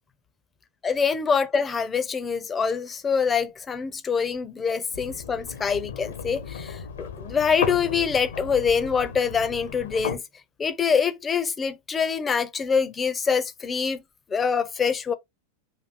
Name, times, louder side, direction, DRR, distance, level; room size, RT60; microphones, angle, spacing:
voice 1, 0.8-10.2 10.6-14.0 14.3-15.1, left 6 dB, 20° left, 0.7 m, -25 dB
sound 1, 4.9-10.2, left 7 dB, 65° left, 1.0 m, -35 dB
4.3 x 2.6 x 4.5 m
figure-of-eight pair, 90°, 0 cm